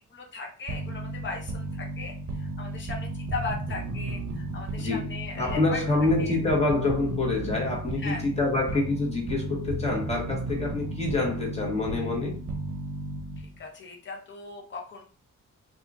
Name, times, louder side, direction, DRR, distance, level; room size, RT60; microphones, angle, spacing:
voice 1, 0.0-5.8 6.2-6.3 8.0-8.2 13.4-15.0, left 3 dB, 35° left, 0.9 m, -38 dB
sound 1, 0.7-13.6, right 2 dB, 50° right, 0.7 m, -34 dB
voice 2, 4.8-5.1 5.4-12.4, left 3 dB, 20° left, 1.3 m, -27 dB
2.8 x 2.5 x 3.6 m
cardioid pair, 110°, 32 cm